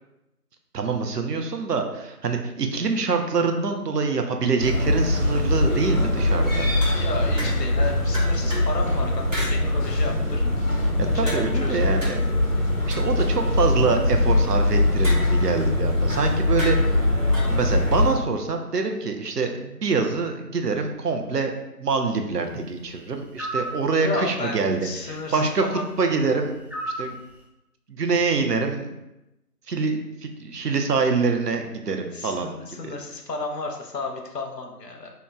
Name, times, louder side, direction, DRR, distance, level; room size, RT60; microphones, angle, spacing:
voice 1, 0.7-6.7 11.1-12.1 12.8-17.0 17.5-21.5 21.8-26.5 27.0-27.2 27.9-28.9 29.7-32.5 32.8-32.9, right 4 dB, 80° right, 4 dB, 0.6 m, -25 dB
sound 1, 4.6-18.1, left 1 dB, 55° left, 1.0 m, -22 dB
sound 2, 6.8-7.8 8.1-8.7 9.3-9.5 11.3-13.7 15.0-15.7 16.6-17.5, equal, 50° right, 1.1 m, -36 dB
voice 2, 6.9-10.4 11.1-12.2 24.0-25.9 32.1-35.1, left 3 dB, 90° left, 2 dB, 0.8 m, -33 dB
sound 3, 23.4-23.8 26.7-27.1, right 2 dB, 5° right, 0.3 m, -30 dB
2.9 x 2.2 x 3.4 m, 0.92 s
figure-of-eight pair, 165°, 47 cm